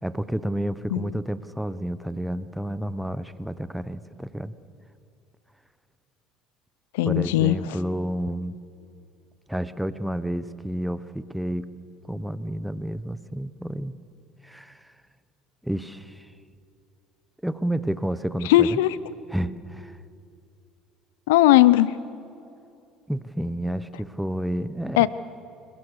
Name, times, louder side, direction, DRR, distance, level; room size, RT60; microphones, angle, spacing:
voice 1, 0.0-4.5 7.0-8.6 9.5-11.7 12.1-13.9 14.4-14.8 15.6-16.3 17.4-18.8 19.3-19.9 23.1-25.1, right 1 dB, 5° right, 14 dB, 1.0 m, -30 dB
voice 2, 6.9-7.6 18.5-19.0 21.3-21.9 25.0-25.1, left 15 dB, 85° left, 18 dB, 0.6 m, -18 dB
30.0 x 21.0 x 6.8 m, 2.7 s
supercardioid pair, 85°, 0 cm